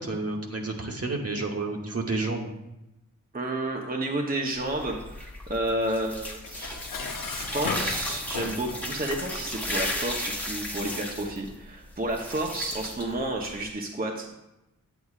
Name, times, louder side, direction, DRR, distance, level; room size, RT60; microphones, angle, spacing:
voice 1, 0.0-2.5, right 3 dB, 50° right, 1 dB, 1.1 m, -30 dB
voice 2, 3.3-6.8 7.3-14.3, right 1 dB, 30° right, 0 dB, 0.8 m, -31 dB
sound 1, 4.5-13.7, left 1 dB, 5° left, 1.1 m, -35 dB
Dishes pots and pans, 6.4-8.9, left 4 dB, 85° left, 0.8 m, -35 dB
8.4 x 8.2 x 2.4 m, 0.92 s
wide cardioid pair, 75°, 32 cm